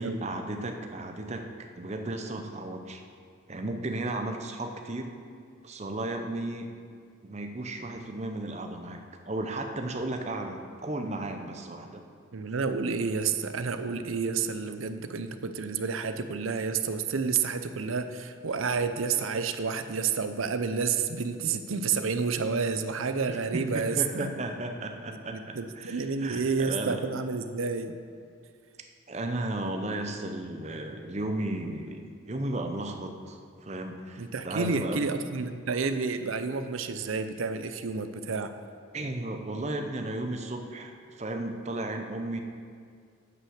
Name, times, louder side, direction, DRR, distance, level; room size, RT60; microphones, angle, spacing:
voice 1, 0.0-1.5 1.7-3.0 3.5-5.1 5.6-6.7 7.2-12.0 23.3-27.0 29.1-35.0 38.9-42.4, right 2 dB, 35° right, 5 dB, 0.7 m, -34 dB
voice 2, 12.3-24.3 25.3-27.9 34.2-38.5, right 5 dB, 80° right, 9 dB, 0.6 m, -30 dB
9.3 x 5.7 x 6.4 m, 2.2 s
head